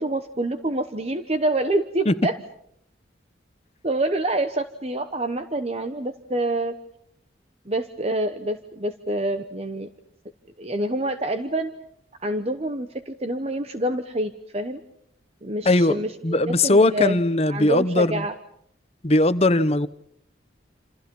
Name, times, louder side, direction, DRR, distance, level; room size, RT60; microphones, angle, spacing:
voice 1, 0.0-2.4 3.8-6.7 7.7-9.9 10.6-11.7 12.2-14.8 15.4-17.2 17.5-18.3, right 1 dB, 35° right, 1.0 m, -26 dB
voice 2, 15.6-18.2 19.0-19.9, left 2 dB, 35° left, 0.9 m, -19 dB
28.0 x 28.0 x 5.5 m
head